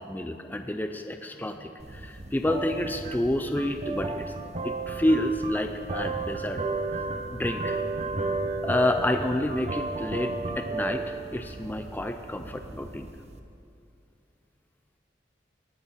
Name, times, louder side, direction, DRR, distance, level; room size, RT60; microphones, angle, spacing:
voice 1, 0.0-4.3 4.6-6.6 7.3-7.8 8.6-13.1, left 1 dB, 10° left, 7 dB, 0.4 m, -29 dB
sound 1, 1.8-13.4, right 3 dB, 40° right, 0.8 m, -33 dB
19.0 x 10.0 x 4.1 m, 2.5 s
head